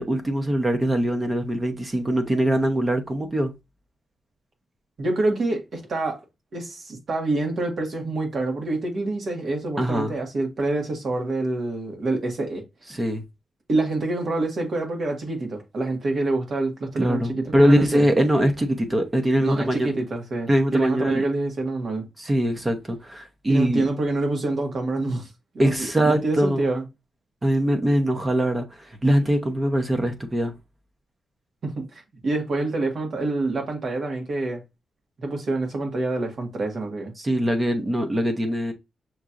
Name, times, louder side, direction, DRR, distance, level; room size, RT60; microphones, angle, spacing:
voice 1, 0.0-3.5 9.8-10.1 12.9-13.2 17.0-19.9 20.5-21.2 22.2-23.8 25.6-26.7 27.4-30.5 37.2-38.7, right 1 dB, 20° right, 0.9 m, -22 dB
voice 2, 5.0-6.2 6.5-12.6 13.7-18.0 19.4-22.0 23.5-25.3 25.5-25.7 26.0-26.8 31.6-34.6 35.2-37.1, right 2 dB, 55° right, 1.6 m, -26 dB
6.2 x 2.9 x 2.5 m
cardioid pair, 110°, 0 cm